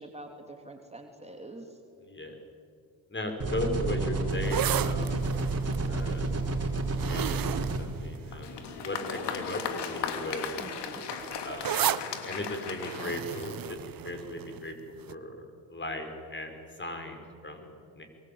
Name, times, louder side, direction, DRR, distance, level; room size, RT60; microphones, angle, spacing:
voice 1, 0.0-1.8 10.6-11.0, right 1 dB, 15° right, 2 dB, 3.3 m, -45 dB
voice 2, 2.0-2.4 3.1-5.2 5.9-7.4 7.8-10.6 11.4-14.7 15.1-18.0, left 1 dB, 25° left, 5 dB, 5.8 m, -37 dB
sound 1, 3.4-7.8, right 3 dB, 35° right, 5.3 m, -30 dB
sound 2, 4.3-8.7 9.5-9.8 10.0-14.7 15.1-15.2, right 11 dB, 50° right, 1.1 m, -34 dB
Applause, 8.3-13.9, left 6 dB, 65° left, 3.2 m, -37 dB
23.5 x 23.5 x 8.9 m, 2.3 s
supercardioid pair, 65°, 44 cm